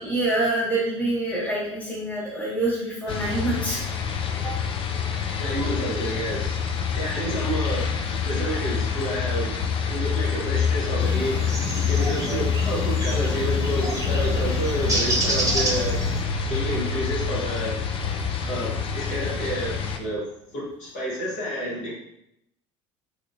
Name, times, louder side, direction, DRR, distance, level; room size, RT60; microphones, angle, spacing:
voice 1, 0.0-3.8 4.4-4.5, right 2 dB, 10° left, -6 dB, 1.4 m, -26 dB
sound 1, 3.1-20.0, left 6 dB, 35° left, 0.4 m, -26 dB
voice 2, 5.4-6.6 7.0-7.9 8.2-9.5 9.9-11.6 11.9-16.0 16.5-17.8 18.5-20.2 20.5-21.9, right 1 dB, 55° left, -6 dB, 1.3 m, -29 dB
sound 2, 11.0-16.2, right 1 dB, 20° right, 0.9 m, -29 dB
3.0 x 2.8 x 2.8 m, 0.80 s
hypercardioid pair, 70°, 16 cm